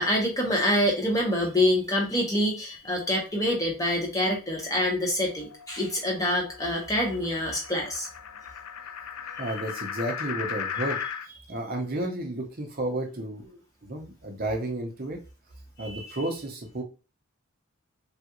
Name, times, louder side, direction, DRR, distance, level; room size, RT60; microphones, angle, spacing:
voice 1, 0.0-8.1 9.3-9.6 15.8-16.2, left 1 dB, 15° left, -1 dB, 0.9 m, -26 dB
sound 1, 4.6-11.3, left 7 dB, 75° left, 0.4 m, -37 dB
voice 2, 9.4-11.0 11.5-15.2 15.8-16.8, right 1 dB, 40° right, 2 dB, 0.7 m, -32 dB
3.4 x 2.4 x 2.9 m, 0.32 s
head